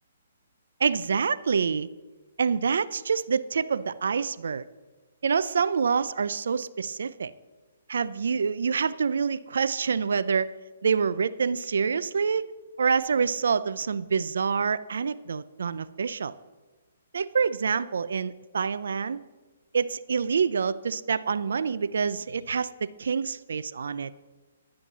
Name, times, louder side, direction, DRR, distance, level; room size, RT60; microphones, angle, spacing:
voice 1, 0.8-1.9 2.4-4.7 5.2-7.3 7.9-10.5 10.8-12.5 12.8-16.3 17.1-19.2 19.7-24.1, right 6 dB, 75° right, 16 dB, 0.5 m, -26 dB
11.0 x 9.1 x 7.3 m, 1.2 s
hypercardioid pair, 155°, 0 cm